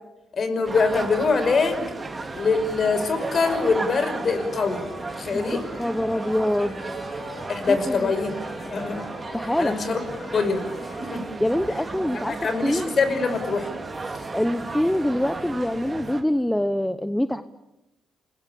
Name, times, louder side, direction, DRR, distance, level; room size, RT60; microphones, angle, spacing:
voice 1, 0.3-1.9 2.3-4.8 5.2-5.6 7.5-9.0 9.6-10.0 10.3-10.7 11.0-11.2 12.4-13.8, left 4 dB, 45° left, 9 dB, 5.7 m, -24 dB
sound 1, 0.6-16.2, right 3 dB, 25° right, 3.0 m, -34 dB
sound 2, 3.0-11.1, left 4 dB, 75° left, 7.4 m, -44 dB
voice 2, 5.3-6.8 7.7-8.1 9.3-9.8 11.4-12.3 12.6-12.9 14.3-17.4, left 1 dB, 5° left, 11 dB, 1.0 m, -25 dB
29.0 x 21.0 x 8.6 m, 0.93 s
cardioid pair, 90°, 0 cm